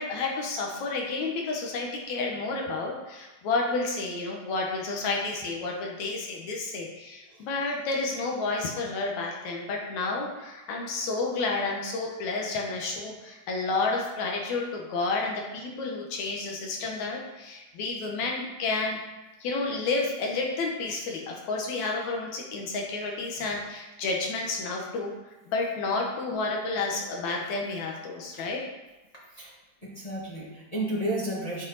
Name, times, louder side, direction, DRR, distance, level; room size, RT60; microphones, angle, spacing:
voice 1, 0.0-19.0 19.4-25.1 25.5-28.7, left 3 dB, 70° left, 0 dB, 2.4 m, -30 dB
voice 2, 29.8-31.6, right 1 dB, 25° left, -7 dB, 0.9 m, -32 dB
9.8 x 4.9 x 4.1 m, 1.1 s
omnidirectional pair, 3.5 m